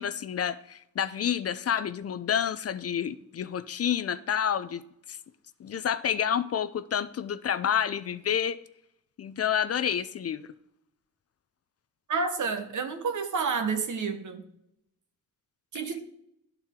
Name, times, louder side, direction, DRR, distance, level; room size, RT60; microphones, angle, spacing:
voice 1, 0.0-4.8 5.1-5.2 5.6-8.6 9.2-10.5, left 8 dB, 45° left, 0.4 m, -29 dB
voice 2, 12.1-14.5 15.7-16.0, right 5 dB, 60° right, 1.1 m, -29 dB
11.0 x 4.4 x 3.6 m
cardioid pair, 65°, 33 cm